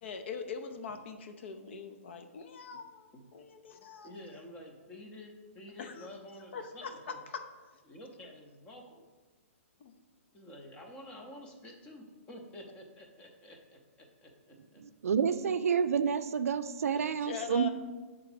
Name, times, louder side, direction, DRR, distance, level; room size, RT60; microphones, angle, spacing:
voice 1, 0.0-4.2 5.8-6.1 6.5-7.4 9.8-9.9 16.9-17.7, left 6 dB, 50° left, 7 dB, 0.6 m, -42 dB
voice 2, 4.0-7.2 7.9-9.1 10.3-14.8, left 1 dB, 15° left, 2 dB, 0.6 m, -50 dB
voice 3, 14.8-17.7, right 7 dB, 80° right, 11 dB, 0.4 m, -29 dB
6.9 x 3.6 x 4.9 m, 1.3 s
hypercardioid pair, 165°, 8 cm